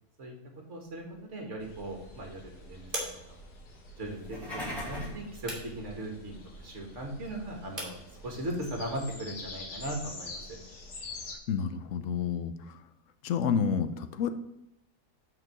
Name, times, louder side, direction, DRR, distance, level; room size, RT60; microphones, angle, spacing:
voice 1, 0.7-2.9 4.0-10.4, right 1 dB, 50° right, 2 dB, 1.9 m, -38 dB
sound 1, 0.8-10.0, right 1 dB, 35° right, 2.3 m, -46 dB
sound 2, 1.6-11.4, left 2 dB, 85° left, 1.8 m, -46 dB
sound 3, 4.1-5.3, left 1 dB, ahead, 2.5 m, -38 dB
voice 2, 11.5-12.9 13.2-14.3, left 7 dB, 65° left, 10 dB, 0.9 m, -30 dB
6.1 x 4.7 x 6.4 m, 0.91 s
omnidirectional pair, 1.6 m